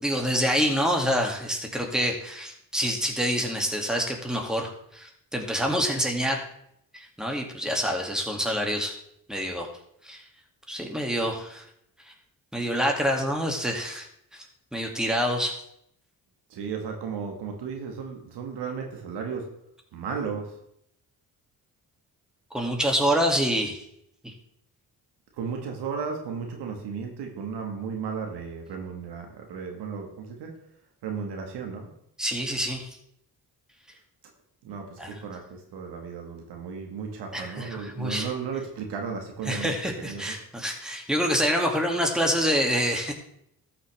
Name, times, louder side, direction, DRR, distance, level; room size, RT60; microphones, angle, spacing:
voice 1, 0.0-6.5 6.9-8.9 9.3-9.7 10.0-10.2 10.7-11.6 12.5-14.1 14.7-15.6 22.5-23.8 24.2-24.3 32.2-33.0 35.0-35.2 37.3-38.3 39.5-43.1, equal, ahead, 1 dB, 2.3 m, -26 dB
voice 2, 16.5-19.5 19.9-20.6 25.3-30.6 31.0-31.9 34.6-40.4, right 6 dB, 80° right, 2 dB, 1.7 m, -34 dB
14.0 x 5.9 x 3.4 m, 0.74 s
supercardioid pair, 55°, 40 cm